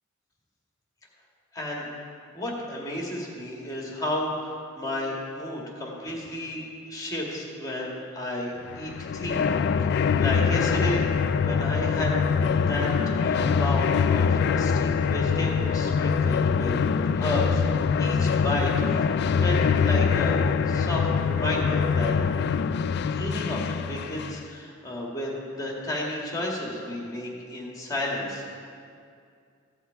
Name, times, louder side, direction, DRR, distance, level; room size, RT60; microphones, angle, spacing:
voice 1, 1.5-1.9 2.3-6.6 6.9-9.5 9.9-11.1 11.4-12.1 12.7-12.9 13.2-16.7 17.1-19.1 19.3-20.4 20.7-22.1 23.1-28.6, left 1 dB, 20° left, -2 dB, 1.8 m, -32 dB
sound 1, 8.7-24.5, left 6 dB, 55° left, 0.3 m, -24 dB
15.5 x 6.4 x 4.6 m, 2.3 s
head